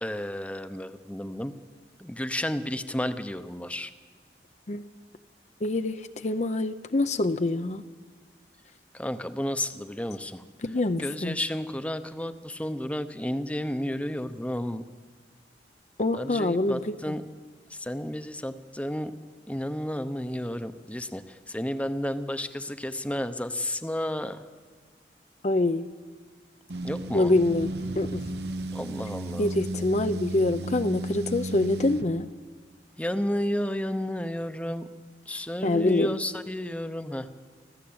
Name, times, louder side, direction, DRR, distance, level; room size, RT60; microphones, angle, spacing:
voice 1, 0.0-1.5 2.0-3.9 8.9-10.4 11.0-14.8 16.1-17.3 17.7-19.1 19.5-24.5 26.8-27.3 28.7-29.5 33.0-34.9 35.3-37.3, left 1 dB, 10° left, 10 dB, 0.8 m, -32 dB
voice 2, 5.6-7.8 10.6-11.4 16.0-17.1 25.4-25.9 27.1-28.2 29.4-32.3 35.6-36.2, left 2 dB, 40° left, 9 dB, 0.6 m, -25 dB
sound 1, 26.7-32.1, right 1 dB, 70° right, 1.1 m, -34 dB
25.0 x 15.0 x 8.7 m, 1.5 s
head